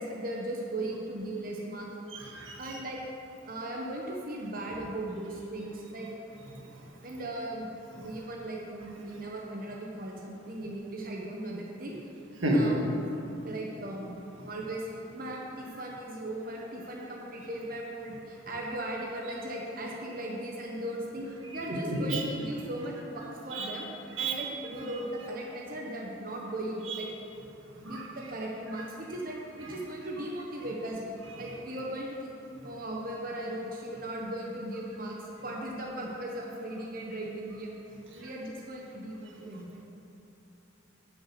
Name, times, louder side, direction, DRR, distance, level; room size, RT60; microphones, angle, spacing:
voice 1, 0.0-1.9 2.6-3.0 3.5-6.1 7.0-7.7 7.9-12.0 12.5-13.1 13.4-14.2 14.4-14.8 15.1-23.9 24.2-27.1 27.8-31.0 31.4-32.3 32.6-37.7 38.1-39.8, right 1 dB, 45° right, -2 dB, 1.1 m, -37 dB
voice 2, 2.1-2.8 6.5-6.8 8.0-8.1 12.4-12.7 21.5-22.2 23.5-23.7 24.2-24.3 26.9-27.0 27.8-28.1 29.6-29.7 38.1-38.3, right 1 dB, 90° right, -2 dB, 1.9 m, -31 dB
9.9 x 6.5 x 7.7 m, 2.9 s
head